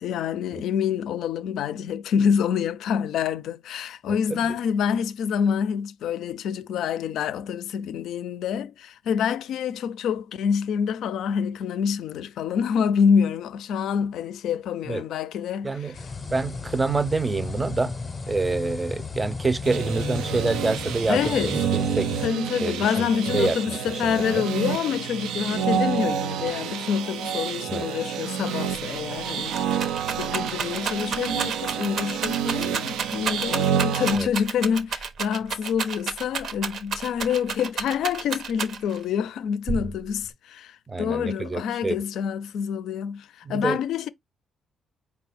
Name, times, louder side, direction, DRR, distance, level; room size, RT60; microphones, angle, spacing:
voice 1, 0.0-15.9 21.1-21.5 22.2-44.1, left 7 dB, 80° left, 0.4 m, -27 dB
voice 2, 4.1-4.5 14.9-15.0 15.6-16.0 16.3-17.9 18.3-22.1 22.6-24.4 27.7-27.9 34.2-34.3 40.9-42.0 43.4-43.8, right 3 dB, 20° right, 0.5 m, -27 dB
sound 1, 15.9-22.3, left 4 dB, 35° left, 0.7 m, -34 dB
sound 2, 19.6-34.2, right 8 dB, 90° right, 0.4 m, -29 dB
Rattle, 28.7-28.8 29.1-39.0 39.7-40.3, right 5 dB, 65° right, 0.9 m, -31 dB
4.4 x 2.3 x 4.1 m
cardioid pair, 90°, 0 cm